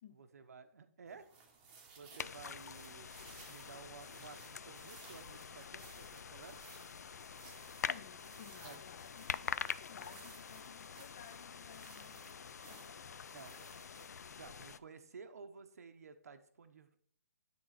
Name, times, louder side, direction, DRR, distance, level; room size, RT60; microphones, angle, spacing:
voice 1, 0.1-1.3 2.0-3.1 3.5-6.7 8.6-8.8 13.3-13.8 14.4-17.0, right 5 dB, 65° right, 1.0 m, -54 dB
sound 1, 1.1-14.1, right 5 dB, 15° right, 1.0 m, -60 dB
sound 2, 2.2-14.8, left 6 dB, 80° left, 0.5 m, -45 dB
voice 2, 7.3-12.9, left 10 dB, 20° left, 0.5 m, -58 dB
11.5 x 3.8 x 5.9 m
hypercardioid pair, 175°, 9 cm